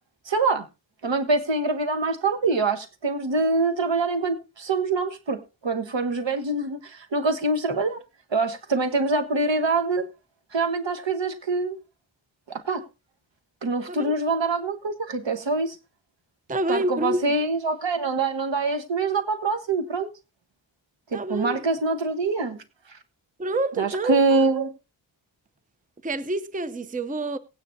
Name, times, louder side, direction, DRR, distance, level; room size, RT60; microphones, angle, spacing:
voice 1, 0.3-0.6 1.0-8.0 8.3-10.1 10.5-11.8 12.5-12.8 13.6-15.8 16.7-20.1 21.1-22.6 23.8-24.7, right 3 dB, 65° right, 1.5 m, -25 dB
voice 2, 16.5-17.2 21.1-21.6 23.4-24.4 26.0-27.4, right 2 dB, 15° right, 0.7 m, -27 dB
18.0 x 9.6 x 2.7 m
wide cardioid pair, 70°, 47 cm